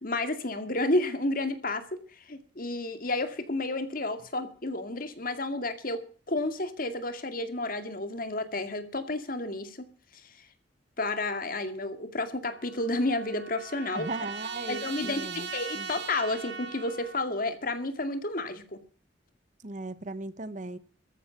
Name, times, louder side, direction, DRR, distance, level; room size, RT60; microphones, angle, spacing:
voice 1, 0.0-9.8 10.2-10.5 11.0-14.1 14.7-18.8, left 2 dB, 50° left, 2.2 m, -31 dB
Trumpet, 12.5-17.2, right 5 dB, 80° right, 2.8 m, -40 dB
voice 2, 13.9-15.5 15.8-15.9 19.6-20.8, right 2 dB, 45° right, 1.0 m, -37 dB
14.5 x 12.0 x 5.9 m
head